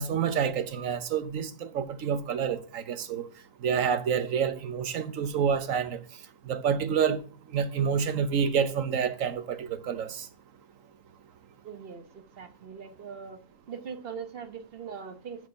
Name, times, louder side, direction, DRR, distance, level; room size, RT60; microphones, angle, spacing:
voice 1, 0.0-3.3 3.6-6.0 6.5-7.2 7.5-10.3, right 7 dB, 80° right, 1.3 m, -28 dB
voice 2, 11.6-12.0 12.4-13.4 13.7-15.5, right 6 dB, 50° right, 1.1 m, -41 dB
7.2 x 6.1 x 5.8 m
omnidirectional pair, 1.4 m